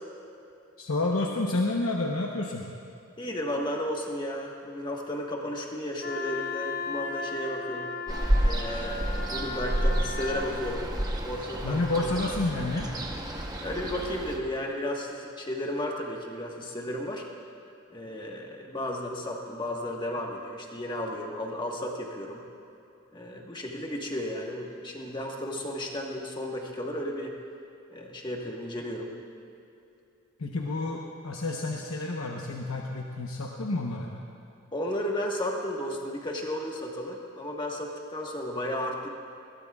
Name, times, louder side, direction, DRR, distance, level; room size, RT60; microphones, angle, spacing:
voice 1, 0.8-2.7 11.6-12.9 30.4-34.1, left 2 dB, 85° left, -1 dB, 1.0 m, -29 dB
voice 2, 3.2-7.9 8.4-10.9 11.2-12.0 13.6-17.2 17.9-22.4 23.1-27.3 27.9-29.1 34.7-39.1, left 1 dB, 20° left, -1 dB, 1.4 m, -33 dB
Wind instrument woodwind instrument, 6.0-10.5, left 4 dB, 45° left, 0.9 m, -36 dB
Ocean, 8.1-14.4, right 1 dB, 20° right, 1.0 m, -30 dB
21.5 x 16.5 x 2.4 m, 2.7 s
head